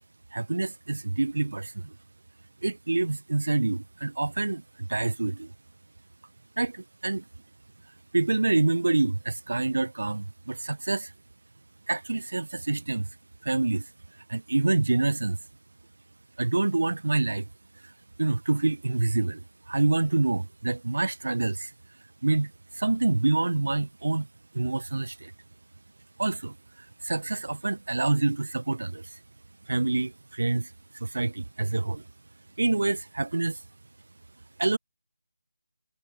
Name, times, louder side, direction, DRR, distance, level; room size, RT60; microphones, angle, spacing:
voice 1, 0.3-1.9 2.6-5.5 6.6-7.2 8.1-11.1 11.9-13.1 13.4-13.9 14.3-15.4 16.4-17.5 18.2-21.7 22.2-24.3 24.5-25.3 26.2-29.2 29.7-32.0 32.6-33.6 34.6-34.8, right 2 dB, 70° right, 0.4 m, -27 dB
figure-of-eight pair, 170°, 0 cm